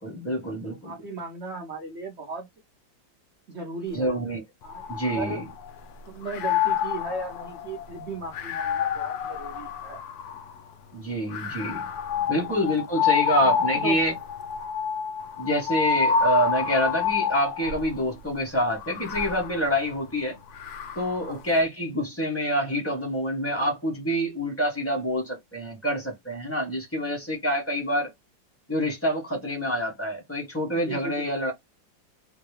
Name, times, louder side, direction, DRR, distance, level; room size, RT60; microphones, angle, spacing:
voice 1, 0.0-0.9 3.9-4.4 4.9-5.4 10.9-11.8 12.3-14.1 15.4-20.4 20.9-28.1 28.7-31.5, equal, 20° left, 0.3 m, -27 dB
voice 2, 0.7-2.5 3.5-4.2 4.6-5.4 6.1-10.0 12.2-12.6 12.9-13.0 13.4-14.0 21.2-21.4 23.6-23.7 30.7-31.4, right 3 dB, 60° right, 0.7 m, -37 dB
sound 1, 4.6-5.8 6.2-10.6 11.3-18.0 18.7-21.3, left 7 dB, 70° left, 0.9 m, -28 dB
3.7 x 2.3 x 3.1 m
omnidirectional pair, 2.1 m